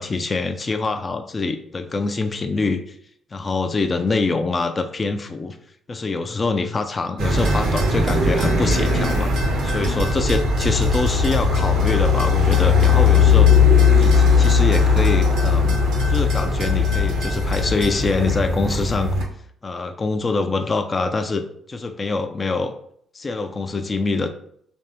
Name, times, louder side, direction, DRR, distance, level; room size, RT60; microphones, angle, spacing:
voice 1, 0.0-3.0 3.3-5.6 5.9-9.3 9.6-15.8 16.1-19.2 19.6-22.7 23.1-24.3, left 3 dB, 35° left, 7 dB, 0.3 m, -25 dB
sound 1, 7.2-19.2, left 4 dB, 65° right, 0.7 m, -18 dB
3.2 x 2.7 x 3.8 m, 0.67 s
figure-of-eight pair, 45°, 0 cm